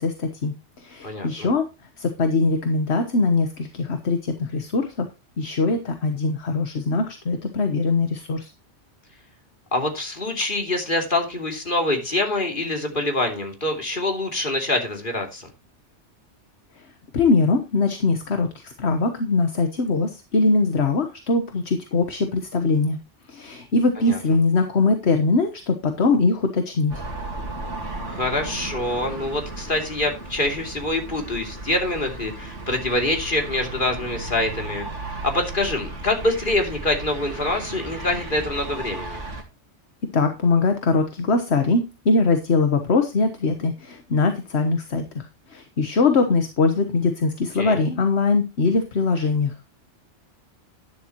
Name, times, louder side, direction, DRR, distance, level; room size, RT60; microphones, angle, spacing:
voice 1, 0.0-1.7 2.0-5.1 5.4-8.5 17.1-23.0 23.3-27.0 40.1-45.2 45.5-49.5, left 3 dB, 65° left, 7 dB, 1.5 m, -22 dB
voice 2, 1.0-1.5 9.7-15.5 24.0-24.2 28.0-39.2 47.6-47.8, left 2 dB, 45° left, 3 dB, 3.2 m, -25 dB
sound 1, 26.9-39.4, right 2 dB, 85° right, 2.6 m, -35 dB
12.0 x 10.0 x 3.0 m, 0.26 s
omnidirectional pair, 1.2 m